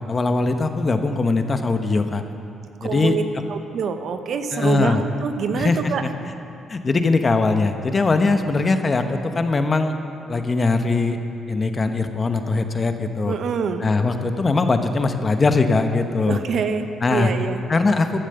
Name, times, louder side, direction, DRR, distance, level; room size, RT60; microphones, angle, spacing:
voice 1, 0.1-2.2 2.8-3.2 4.5-5.0 5.5-6.1 6.7-9.9 10.3-11.2 11.5-13.4 13.8-16.4 17.0-17.3 17.7-18.2, left 3 dB, 35° left, 7 dB, 1.0 m, -21 dB
voice 2, 2.8-3.2 3.5-6.1 13.3-13.8 16.3-17.6, right 6 dB, 65° right, 8 dB, 0.9 m, -25 dB
14.5 x 10.0 x 6.8 m, 2.7 s
cardioid pair, 90°, 0 cm